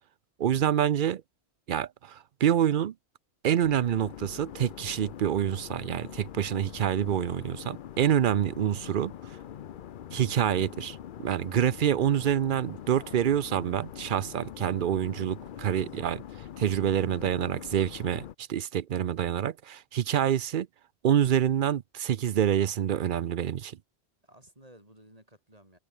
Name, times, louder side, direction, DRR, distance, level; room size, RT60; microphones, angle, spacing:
voice 1, 0.4-1.2 1.7-2.9 3.4-9.1 10.1-16.2 16.6-20.7 21.0-23.8, right 10 dB, 55° right, 0.7 m, -27 dB
sound 1, 3.6-18.3, left 10 dB, 55° left, 0.7 m, -43 dB
voice 2, 15.5-16.0 24.2-25.8, right 1 dB, 35° right, 6.9 m, -56 dB
omnidirectional pair, 1.1 m